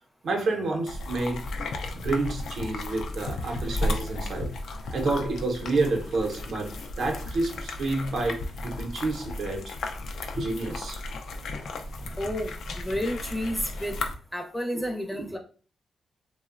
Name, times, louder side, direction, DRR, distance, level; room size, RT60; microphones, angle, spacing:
voice 1, 0.2-1.4 1.9-4.5 4.9-9.7 10.3-11.1 14.7-15.3, right 3 dB, 75° right, 0.6 m, -29 dB
sound 1, 0.9-14.1, left 2 dB, 80° left, 0.3 m, -34 dB
voice 2, 12.2-14.0 14.3-15.4, equal, 10° left, 0.5 m, -31 dB
2.8 x 2.0 x 2.3 m
cardioid pair, 95°, 0 cm